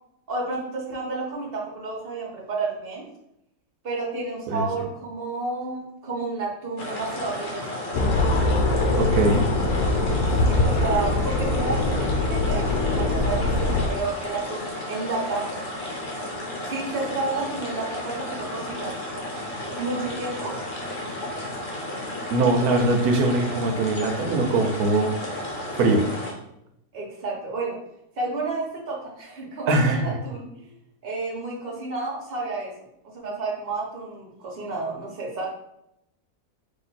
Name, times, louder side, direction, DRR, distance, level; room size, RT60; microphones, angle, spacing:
voice 1, 0.3-3.1 3.8-7.8 10.4-15.5 16.7-18.9 19.8-20.6 26.9-27.8 28.2-30.7 31.0-32.7 33.1-35.5, right 3 dB, 40° right, -2 dB, 1.3 m, -31 dB
sound 1, 6.8-26.3, left 1 dB, 60° left, 1.3 m, -33 dB
sound 2, 7.9-13.9, left 2 dB, 80° left, 1.2 m, -22 dB
voice 2, 9.0-9.5 22.3-25.1 25.7-26.1 29.7-30.2, right 2 dB, 90° right, 5 dB, 1.2 m, -21 dB
3.4 x 3.0 x 4.1 m, 0.80 s
omnidirectional pair, 1.5 m